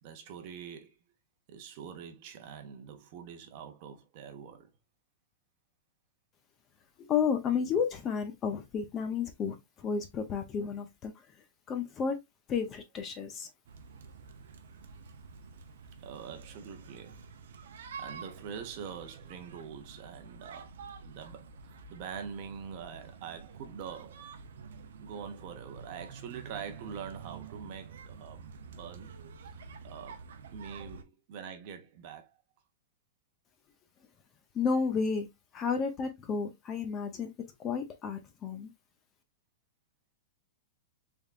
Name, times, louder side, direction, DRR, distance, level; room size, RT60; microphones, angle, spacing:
voice 1, 0.0-1.0 1.5-4.7 16.0-17.2 18.0-20.7 21.0-24.3 25.0-29.2 29.4-30.2 30.5-32.3, right 7 dB, 40° right, 0.7 m, -44 dB
voice 2, 7.0-11.1 11.7-12.2 12.5-13.5 34.5-35.3 35.5-37.3 37.6-38.7, left 6 dB, 20° left, 0.6 m, -32 dB
sound 1, 13.7-31.0, right 5 dB, 90° right, 0.6 m, -48 dB
3.5 x 3.5 x 2.4 m
supercardioid pair, 165°, 0 cm